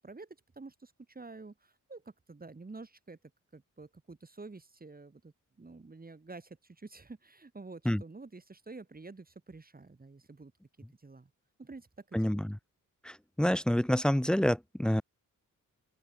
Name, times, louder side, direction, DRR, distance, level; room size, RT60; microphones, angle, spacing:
voice 1, 0.0-3.2 3.5-10.5 11.0-11.3 11.6-12.5, right 3 dB, 25° right, 3.4 m, -49 dB
voice 2, 12.1-12.5 13.0-15.0, equal, 5° left, 0.3 m, -28 dB
open air
wide cardioid pair, 110°, 33 cm